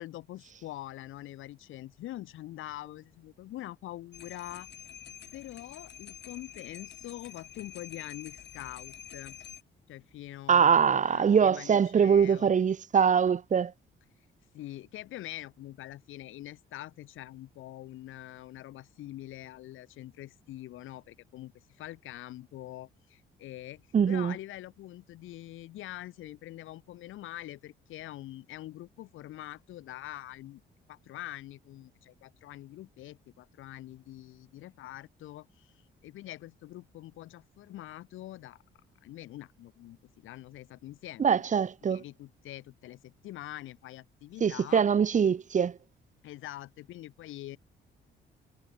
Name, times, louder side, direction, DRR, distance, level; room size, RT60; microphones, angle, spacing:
voice 1, 0.0-4.7 5.3-9.4 9.9-12.5 14.5-30.6 30.9-35.7 36.0-38.6 39.0-41.3 41.8-44.8 46.2-47.6, left 15 dB, 85° left, 3.2 m, -44 dB
sound 1, 4.1-9.6, left 9 dB, 60° left, 7.5 m, -47 dB
voice 2, 10.5-13.7 23.9-24.3 41.2-42.0 44.4-45.7, right 7 dB, 40° right, 0.8 m, -23 dB
cardioid pair, 90°, 20 cm